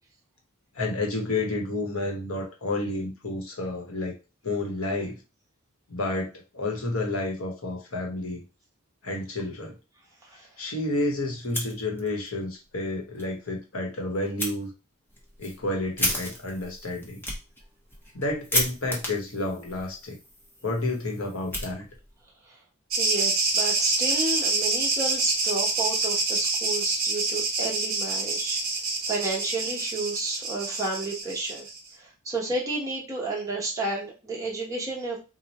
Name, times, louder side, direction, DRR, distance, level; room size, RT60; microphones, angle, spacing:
voice 1, 0.7-4.1 4.4-5.2 5.9-6.3 6.5-8.4 9.0-9.8 10.6-14.7 15.4-17.2 18.1-20.2 20.6-21.8, left 2 dB, 75° left, 1 dB, 1.1 m, -30 dB
Fire, 11.4-12.3 12.6-12.7 13.2-13.3 14.4-14.5 15.1-22.2, left 1 dB, 10° left, 0.8 m, -33 dB
sound 1, 22.9-31.8, right 3 dB, 45° right, 0.9 m, -27 dB
voice 2, 23.0-28.6 29.1-31.7 32.0-35.2, right 2 dB, 15° right, -3 dB, 1.1 m, -31 dB
3.0 x 2.1 x 4.1 m, 0.30 s
head